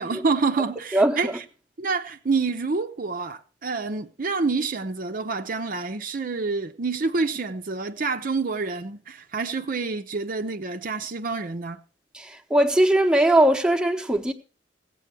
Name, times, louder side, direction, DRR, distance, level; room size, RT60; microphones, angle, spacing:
voice 1, 0.0-1.4 1.8-11.8, right 4 dB, 50° right, 0.7 m, -27 dB
voice 2, 0.9-1.4 12.1-14.3, right 1 dB, 5° right, 1.0 m, -20 dB
16.0 x 8.4 x 4.6 m
head